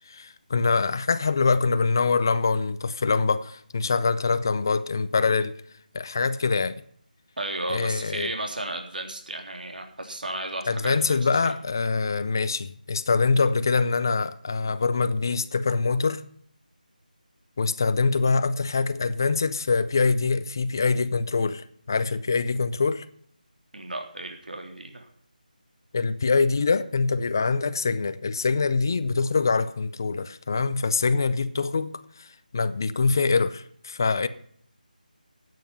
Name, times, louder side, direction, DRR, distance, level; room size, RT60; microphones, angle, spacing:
voice 1, 0.1-5.5 5.9-6.8 7.7-8.3 10.7-16.2 17.6-23.1 25.9-31.9 32.2-34.3, left 4 dB, 25° left, 0.6 m, -24 dB
voice 2, 7.4-11.2 11.4-11.5 23.7-25.1, right 1 dB, 75° right, 3.4 m, -34 dB
14.0 x 9.3 x 5.7 m
figure-of-eight pair, 175°, 5 cm